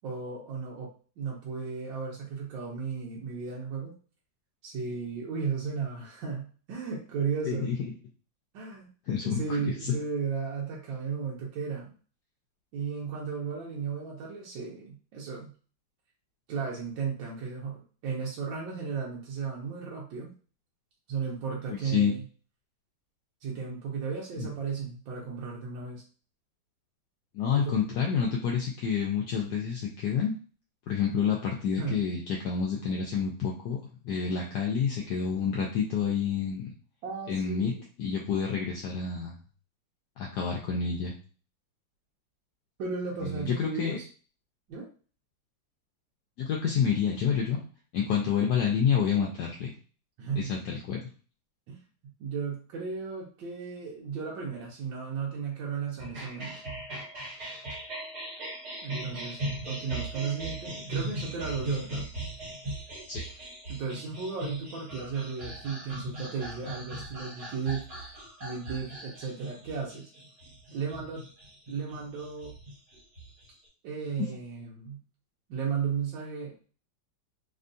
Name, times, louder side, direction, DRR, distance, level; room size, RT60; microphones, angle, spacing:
voice 1, 0.0-0.9 1.2-3.9 4.6-7.7 8.5-8.9 9.2-11.9 12.7-15.5 16.5-20.3 21.1-22.2 23.4-26.0 27.5-27.8 31.8-32.0 37.0-37.8 42.8-44.1 44.7-44.9 50.2-50.5 51.7-51.8 52.2-56.6 58.8-59.4 59.7-62.0 63.7-68.1 68.4-70.1 70.7-71.2 71.7-72.5 73.8-75.0 75.5-76.5, right 5 dB, 80° right, -3 dB, 1.4 m, -35 dB
voice 2, 7.5-7.8 9.1-9.4 21.7-22.1 24.4-24.5 27.3-30.3 30.9-33.8 34.0-36.7 37.3-37.7 38.0-39.3 40.2-41.1 43.2-44.0 46.4-47.6 47.9-49.7 50.4-51.0 63.1-63.2, left 7 dB, 70° left, -1 dB, 1.0 m, -28 dB
sound 1, 56.0-73.7, right 1 dB, 60° right, 1.8 m, -39 dB
3.5 x 2.3 x 2.5 m, 0.38 s
omnidirectional pair, 2.0 m